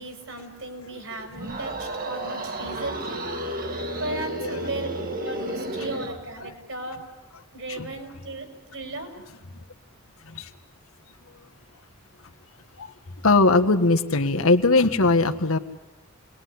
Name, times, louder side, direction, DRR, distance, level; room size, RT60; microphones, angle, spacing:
voice 1, 0.0-3.2 4.0-4.9 5.2-7.0 7.5-9.2, right 2 dB, 65° right, 5 dB, 5.7 m, -36 dB
sound 1, 1.3-6.2, right 1 dB, 40° right, 2.2 m, -32 dB
voice 2, 13.2-15.6, left 3 dB, 75° left, 6 dB, 1.6 m, -20 dB
29.0 x 21.0 x 9.6 m, 1.1 s
head